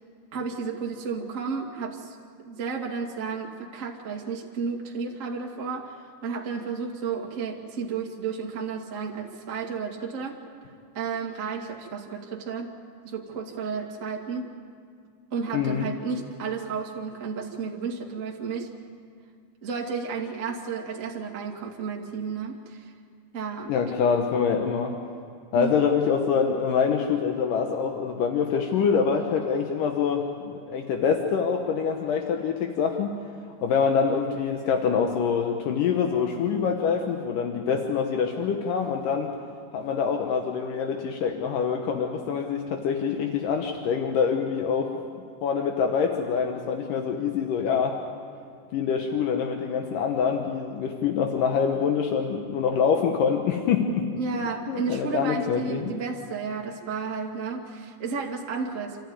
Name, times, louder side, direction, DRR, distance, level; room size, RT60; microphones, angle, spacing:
voice 1, 0.3-2.1 2.4-10.4 10.9-12.7 13.0-14.5 15.3-18.7 19.6-22.9 23.3-24.0 25.5-25.9 54.2-59.0, right 5 dB, 55° right, -1 dB, 0.8 m, -32 dB
voice 2, 15.5-15.9 23.7-24.9 25.5-33.2 33.6-39.3 39.7-45.0 45.4-48.0 48.7-54.1 54.7-55.9, left 6 dB, 70° left, 3 dB, 2.0 m, -25 dB
27.5 x 14.0 x 9.6 m, 2.3 s
omnidirectional pair, 5.3 m